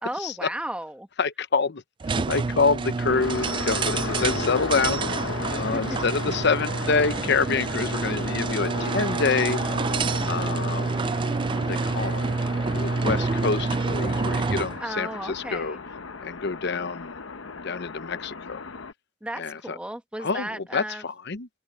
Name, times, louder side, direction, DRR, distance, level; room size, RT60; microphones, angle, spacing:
voice 1, 0.0-1.1 5.6-5.8 14.8-15.8 19.2-21.0, right 1 dB, 5° right, 1.4 m, -34 dB
voice 2, 1.2-5.2 5.5-9.6 10.3-11.0 11.5-12.3 12.7-15.8 16.2-17.2 17.6-18.6 19.4-19.6 20.2-21.5, left 4 dB, 60° left, 0.9 m, -27 dB
sound 1, 2.0-14.8, right 4 dB, 25° right, 0.3 m, -27 dB
sound 2, 3.1-18.9, left 4 dB, 80° left, 1.0 m, -35 dB
open air
head